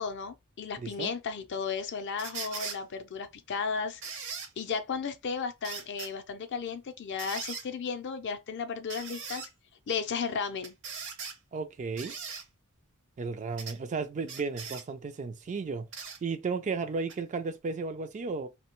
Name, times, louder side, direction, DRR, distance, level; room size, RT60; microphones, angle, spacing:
voice 1, 0.0-4.0 4.6-9.5 9.9-10.7, left 5 dB, 50° left, 0.5 m, -34 dB
voice 2, 0.8-1.1 11.5-12.1 13.2-15.9 16.2-18.5, right 4 dB, 35° right, 0.3 m, -34 dB
sound 1, 2.2-2.8 4.0-4.5 5.6-6.1 7.2-7.7 8.9-9.5 10.6-11.4 12.0-12.4 13.6-13.8 14.3-14.8 15.9-16.2 17.1-17.2, right 5 dB, 55° right, 0.7 m, -39 dB
2.7 x 2.1 x 2.9 m
head